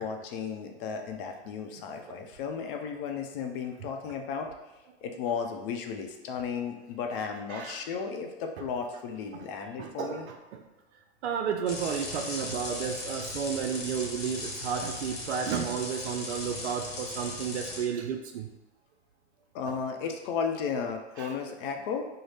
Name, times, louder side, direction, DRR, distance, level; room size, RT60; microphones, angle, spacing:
voice 1, 0.0-4.5 5.0-10.3 17.0-17.1 19.5-22.1, left 6 dB, 50° left, 4 dB, 0.6 m, -34 dB
voice 2, 7.5-7.8 9.3-9.5 9.8-10.6 11.2-18.5 19.7-19.8 21.2-21.3, right 7 dB, 75° right, 4 dB, 0.5 m, -32 dB
sound 1, 11.7-17.8, left 2 dB, 30° left, 1.0 m, -38 dB
3.9 x 2.1 x 3.3 m, 1.0 s
hypercardioid pair, 110°, 34 cm